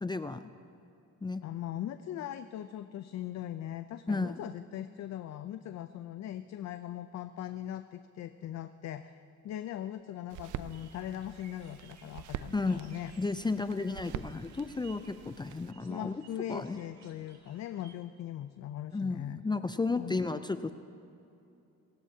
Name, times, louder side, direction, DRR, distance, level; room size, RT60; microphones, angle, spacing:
voice 1, 0.0-0.5 1.2-1.4 4.1-4.4 12.5-12.8 13.2-16.2 16.5-16.8 18.9-20.7, left 3 dB, 15° left, 10 dB, 0.4 m, -33 dB
voice 2, 1.4-13.1 15.9-19.4 20.0-20.1, left 11 dB, 60° left, 10 dB, 0.6 m, -40 dB
sound 1, 10.3-15.7, right 11 dB, 80° right, 0.6 m, -45 dB
sound 2, 10.7-17.9, right 5 dB, 60° right, 2.0 m, -60 dB
28.0 x 16.0 x 2.8 m, 2.8 s
cardioid pair, 90°, 30 cm